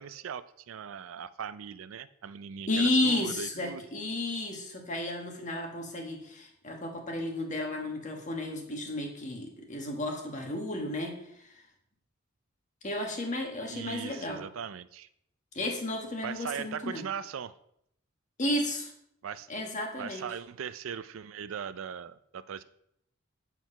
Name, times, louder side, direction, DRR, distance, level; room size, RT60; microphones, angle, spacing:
voice 1, 0.0-3.8 13.7-15.1 16.2-17.5 19.2-19.5 20.0-22.6, right 7 dB, 90° right, 15 dB, 0.4 m, -39 dB
voice 2, 2.7-11.5 12.8-14.4 15.5-17.0 18.4-18.9 19.5-20.2, left 1 dB, 40° left, 2 dB, 1.5 m, -32 dB
7.9 x 4.6 x 5.5 m, 0.74 s
head